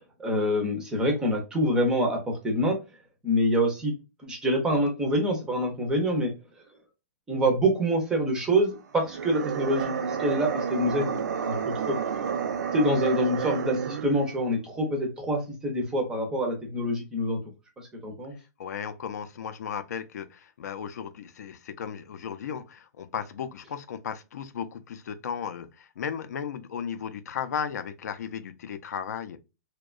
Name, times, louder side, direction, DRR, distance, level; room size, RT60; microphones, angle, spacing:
voice 1, 0.2-2.8 3.2-3.9 4.2-6.3 7.3-12.2 12.7-17.4 17.8-18.3, equal, 5° right, 0.4 m, -26 dB
sound 1, 9.0-14.3, right 7 dB, 90° right, 0.5 m, -30 dB
voice 2, 18.6-29.4, left 7 dB, 75° left, 0.4 m, -35 dB
2.7 x 2.1 x 2.3 m
hypercardioid pair, 165°, 9 cm